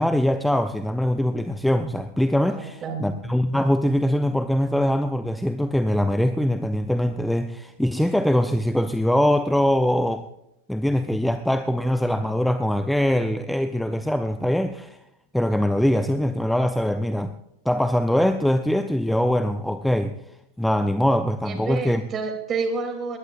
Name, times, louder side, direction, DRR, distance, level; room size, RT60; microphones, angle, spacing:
voice 1, 0.0-10.2 10.7-15.0 15.3-17.3 17.6-20.1 20.6-22.0, left 1 dB, ahead, 10 dB, 0.6 m, -22 dB
voice 2, 2.5-3.1 21.4-23.2, right 4 dB, 25° right, 4 dB, 3.0 m, -29 dB
20.0 x 20.0 x 2.5 m, 0.82 s
figure-of-eight pair, 90°, 0 cm